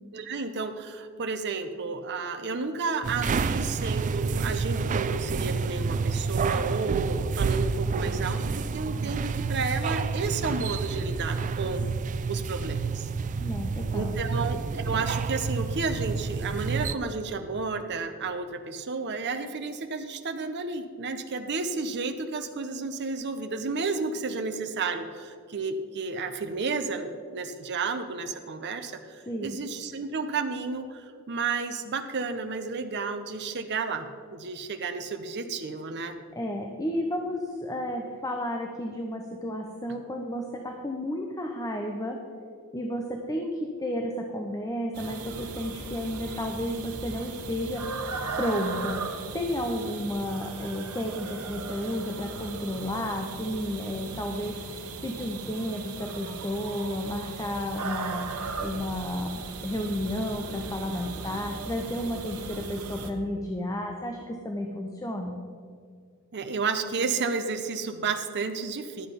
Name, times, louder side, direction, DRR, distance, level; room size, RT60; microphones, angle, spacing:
voice 1, 0.1-11.8 12.3-13.1 13.9-36.2 66.3-69.1, right 4 dB, 50° right, 6 dB, 0.7 m, -32 dB
sound 1, 3.0-16.9, right 4 dB, 35° right, 0.3 m, -29 dB
voice 2, 13.4-14.2 29.3-29.6 36.4-42.2 42.7-47.8 48.4-49.0 49.3-54.6 55.0-59.3 59.6-65.4, left 1 dB, 15° left, 3 dB, 0.7 m, -32 dB
sound 2, 44.9-63.1, right 4 dB, 80° right, 1.1 m, -37 dB
11.5 x 7.9 x 5.2 m, 2.1 s
head